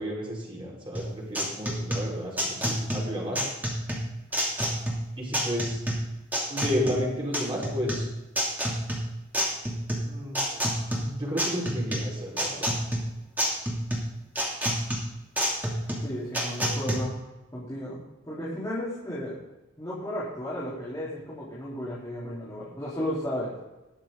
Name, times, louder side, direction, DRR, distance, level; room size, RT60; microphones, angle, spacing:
voice 1, 0.0-3.5 5.2-5.8 6.5-8.0 10.0-10.6 11.0-12.7, equal, 25° right, -4 dB, 4.9 m, -32 dB
sound 1, 0.9-17.0, equal, 10° right, 2.7 m, -29 dB
voice 2, 16.0-17.2 17.5-18.0 18.2-19.4 19.8-23.5, equal, 15° left, -9 dB, 3.7 m, -34 dB
20.5 x 7.3 x 3.9 m, 1.0 s
head